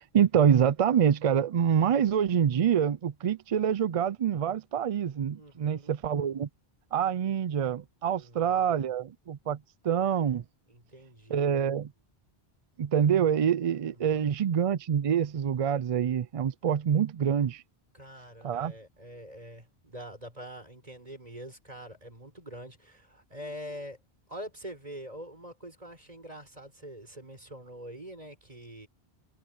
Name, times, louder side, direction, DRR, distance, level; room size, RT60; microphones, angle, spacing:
voice 1, 0.1-6.5 6.9-9.6 9.8-10.4 11.3-11.9 12.8-17.6 18.4-18.7, right 8 dB, 55° right, 0.4 m, -26 dB
voice 2, 5.3-6.0 8.1-8.9 10.7-11.5 13.8-14.3 17.9-24.0 24.3-28.9, equal, 40° right, 6.2 m, -45 dB
omnidirectional pair, 1.1 m